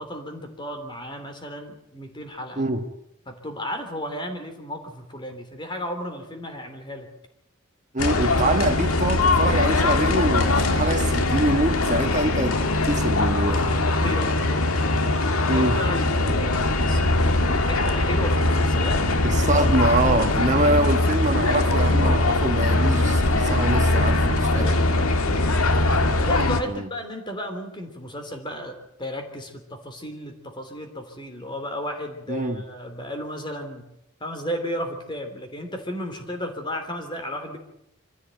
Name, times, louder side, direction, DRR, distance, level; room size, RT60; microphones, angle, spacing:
voice 1, 0.0-2.6 3.3-7.1 13.9-14.6 15.4-19.0 19.5-19.7 24.5-25.1 26.2-33.8 34.2-37.6, equal, 20° left, 3.3 m, -34 dB
voice 2, 7.9-13.7 15.5-15.8 19.2-24.7 26.7-26.9 32.3-32.6, right 1 dB, 35° right, 1.4 m, -24 dB
sound 1, 8.0-26.6, left 2 dB, 90° left, 1.8 m, -21 dB
24.5 x 15.5 x 9.1 m
head